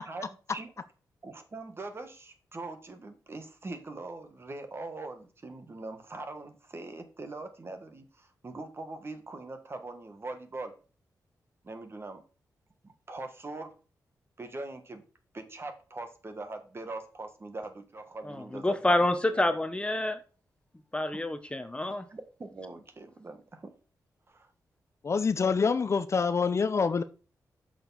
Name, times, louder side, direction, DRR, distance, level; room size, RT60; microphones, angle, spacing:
voice 1, 0.0-0.7 1.2-10.7 11.6-12.2 12.8-13.7 14.4-15.0 15.3-19.5 21.1-21.2 22.1-23.7 24.3-24.5, right 2 dB, 35° right, 1.4 m, -42 dB
voice 2, 18.3-20.2 20.9-22.0, left 1 dB, 15° left, 0.8 m, -28 dB
voice 3, 25.0-27.0, left 5 dB, 45° left, 0.5 m, -26 dB
6.5 x 6.2 x 4.0 m
cardioid pair, 80°, 7 cm